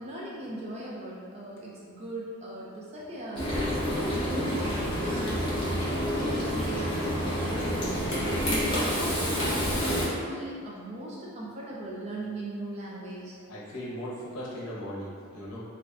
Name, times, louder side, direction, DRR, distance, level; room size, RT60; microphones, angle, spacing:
voice 1, 0.0-3.4 3.8-8.2 8.7-13.4 15.4-15.5, right 1 dB, 30° right, -5 dB, 0.3 m, -38 dB
Frying (food), 3.4-10.1, equal, 25° left, 0.6 m, -28 dB
voice 2, 13.5-15.6, equal, 65° left, -6 dB, 0.7 m, -38 dB
2.4 x 2.2 x 3.4 m, 2.2 s
head